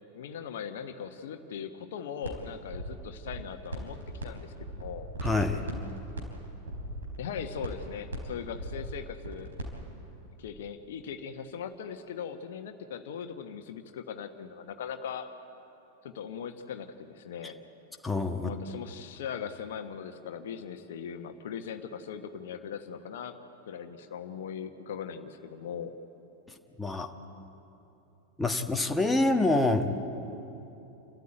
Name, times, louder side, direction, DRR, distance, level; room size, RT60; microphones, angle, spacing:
voice 1, 0.1-5.1 7.2-9.5 10.4-15.3 16.0-17.6 18.4-23.4 23.7-25.9, left 7 dB, 55° left, 7 dB, 1.2 m, -39 dB
sound 1, 2.2-2.4 2.7-4.3 4.5-9.7, right 1 dB, 70° right, 4.4 m, -38 dB
voice 2, 5.2-5.7 18.0-18.5 26.8-27.1 28.4-29.9, left 2 dB, 5° left, 4 dB, 1.4 m, -26 dB
28.5 x 13.5 x 9.0 m, 3.0 s
figure-of-eight pair, 90°, 0 cm